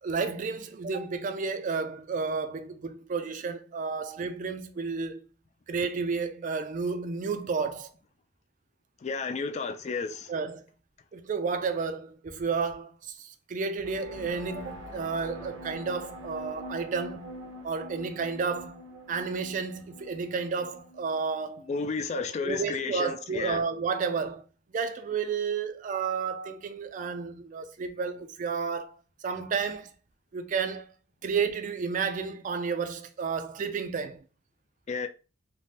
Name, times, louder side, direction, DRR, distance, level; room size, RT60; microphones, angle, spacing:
voice 1, 0.0-5.2 5.7-7.9 10.3-10.6 11.1-17.3 17.6-18.8 19.1-21.7 22.1-24.5 24.7-29.0 29.2-29.9 30.3-30.9 31.2-34.2, right 5 dB, 45° right, 0.3 m, -31 dB
voice 2, 9.0-10.3 21.6-23.6 34.9-35.1, left 4 dB, 35° left, 0.3 m, -32 dB
sound 1, 13.8-21.3, equal, 85° right, 0.7 m, -44 dB
3.2 x 2.1 x 2.7 m
head